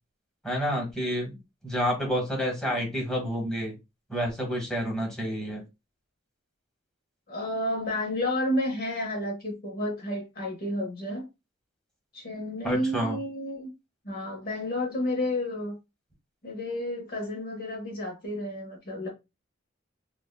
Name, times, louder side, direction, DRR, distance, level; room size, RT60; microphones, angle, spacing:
voice 1, 0.4-1.3 1.6-3.7 4.1-5.6 12.6-13.2, equal, 5° left, 1.2 m, -29 dB
voice 2, 7.3-11.2 12.1-13.7 14.0-15.8 16.4-19.1, left 1 dB, 50° left, 0.8 m, -31 dB
3.5 x 2.2 x 2.2 m
head